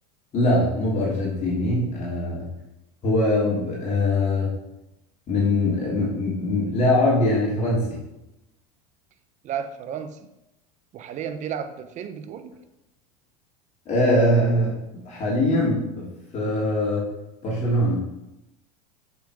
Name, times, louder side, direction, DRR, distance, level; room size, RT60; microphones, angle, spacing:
voice 1, 0.3-2.4 3.0-4.5 5.3-8.0 13.9-14.8 15.0-17.1 17.4-18.0, left 1 dB, 35° left, -5 dB, 3.1 m, -22 dB
voice 2, 9.4-10.3 10.9-12.5, right 8 dB, 40° right, 10 dB, 0.9 m, -33 dB
7.3 x 6.0 x 5.0 m, 0.93 s
hypercardioid pair, 105°, 20 cm